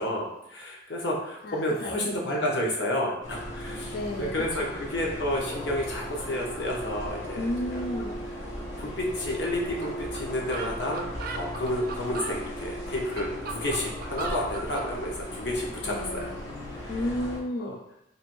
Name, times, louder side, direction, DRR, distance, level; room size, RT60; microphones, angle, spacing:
voice 1, 0.0-7.8 8.8-16.3 16.7-16.9 17.6-17.7, left 1 dB, 75° left, -2 dB, 1.0 m, -31 dB
voice 2, 1.4-2.6 3.9-4.8 7.4-8.2 15.8-16.5 16.9-17.8, left 1 dB, 55° left, 1 dB, 0.4 m, -33 dB
sound 1, 3.2-17.4, equal, 90° left, 1.4 m, -37 dB
sound 2, 9.8-9.9 10.1-10.2 10.5-12.4 12.9-14.9, right 4 dB, 55° right, 0.4 m, -36 dB
3.4 x 2.6 x 4.4 m, 0.84 s
head